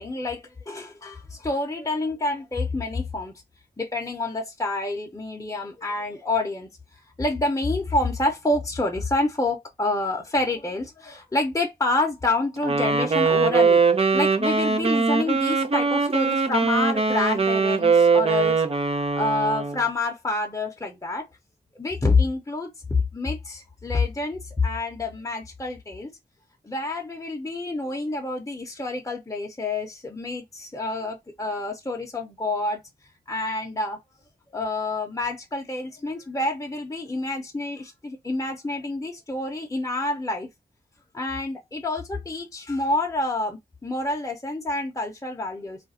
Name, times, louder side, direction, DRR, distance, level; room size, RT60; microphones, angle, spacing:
voice 1, 0.0-3.3 3.8-6.7 7.2-18.6 19.0-21.3 21.8-22.7 23.1-26.1 26.6-32.8 33.3-34.0 34.5-40.5 41.1-45.8, left 2 dB, 20° left, 0.8 m, -28 dB
Wind instrument woodwind instrument, 12.6-19.8, right 4 dB, 35° right, 0.6 m, -21 dB
2.5 x 2.2 x 4.0 m
cardioid pair, 45°, 17 cm